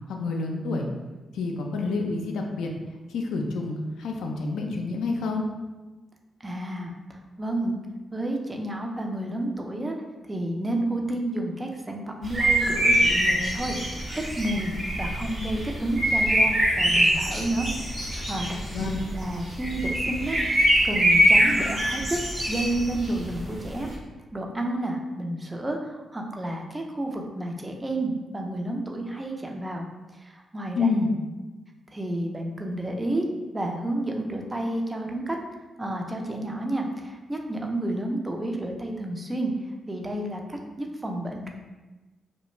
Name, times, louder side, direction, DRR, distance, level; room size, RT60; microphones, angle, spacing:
voice 1, 0.1-0.9 1.3-2.7 3.1-5.5 18.7-19.1 30.8-31.1, left 3 dB, 80° left, 1 dB, 0.3 m, -28 dB
voice 2, 6.4-7.8 8.1-10.0 10.3-13.8 14.2-14.7 15.0-17.7 18.0-22.2 22.5-23.9 24.3-29.8 30.2-30.9 31.9-33.3 33.5-35.4 35.8-39.5 39.9-41.5, right 1 dB, 25° right, 2 dB, 0.4 m, -30 dB
sound 1, 12.2-23.9, equal, 60° right, 0.8 m, -24 dB
2.3 x 2.1 x 3.0 m, 1.2 s
hypercardioid pair, 45°, 0 cm